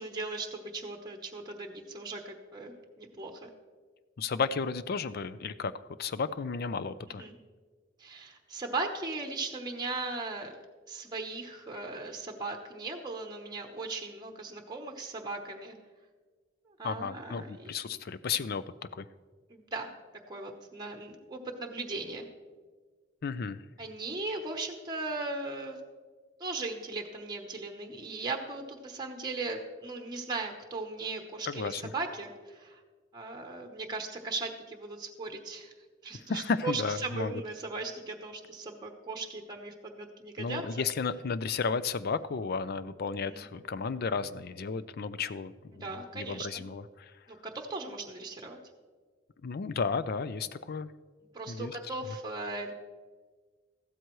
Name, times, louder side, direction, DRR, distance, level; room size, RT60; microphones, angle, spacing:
voice 1, 0.0-3.5 7.2-7.4 8.0-10.5 10.9-15.7 16.8-18.0 19.5-19.9 20.3-22.3 23.8-25.8 26.4-32.8 33.1-35.7 36.0-40.9 43.3-43.5 45.7-46.6 47.4-48.6 51.3-52.7, right 3 dB, 20° right, 3 dB, 0.9 m, -38 dB
voice 2, 4.2-5.7 6.0-7.2 16.8-18.6 18.9-19.0 23.2-23.6 31.5-31.9 36.3-37.4 40.4-47.1 49.4-50.9 51.5-51.8, left 5 dB, 55° left, 14 dB, 0.4 m, -33 dB
14.5 x 12.5 x 3.1 m, 1.5 s
head